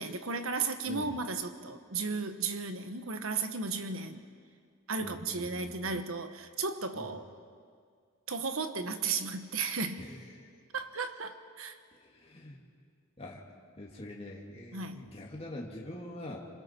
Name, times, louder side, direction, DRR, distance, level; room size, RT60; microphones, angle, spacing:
voice 1, 0.0-4.2 4.9-7.3 8.3-10.0 10.7-11.8 14.7-15.1, right 4 dB, 80° right, 8 dB, 1.3 m, -35 dB
voice 2, 5.0-6.0 6.9-7.1 10.0-10.2 12.0-12.6 13.2-13.4 13.8-16.5, left 1 dB, 30° left, -2 dB, 2.2 m, -44 dB
26.5 x 26.0 x 4.5 m, 2.1 s
head